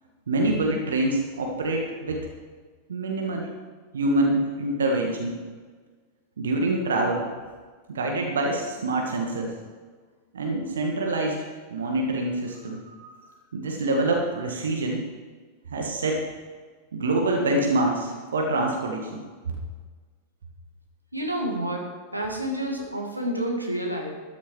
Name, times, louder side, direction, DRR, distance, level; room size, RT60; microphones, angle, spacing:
voice 1, 0.3-2.3 2.9-3.5 3.9-5.4 6.4-7.2 7.9-9.5 10.3-13.2 13.5-15.0 15.7-16.2 16.9-19.2, right 2 dB, 65° right, 1 dB, 1.8 m, -26 dB
voice 2, 21.1-24.1, right 1 dB, 85° right, 0 dB, 2.1 m, -29 dB
13.5 x 11.5 x 4.7 m, 1.5 s
figure-of-eight pair, 90°, 0 cm